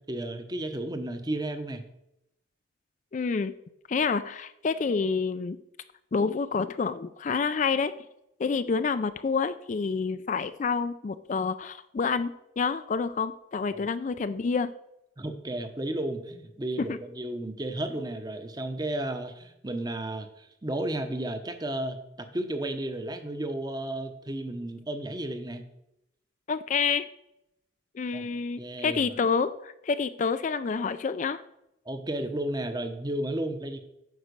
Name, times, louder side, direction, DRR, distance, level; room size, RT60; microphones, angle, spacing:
voice 1, 0.1-1.8 13.7-13.9 15.2-25.6 28.1-28.2 28.6-29.1 31.9-33.8, right 1 dB, 20° right, 8 dB, 0.8 m, -33 dB
voice 2, 3.1-3.5 3.9-5.6 6.1-7.9 8.4-14.7 16.8-17.0 26.5-27.1 28.0-31.4, left 5 dB, 40° left, 12 dB, 0.3 m, -28 dB
9.5 x 5.0 x 6.6 m, 0.84 s
head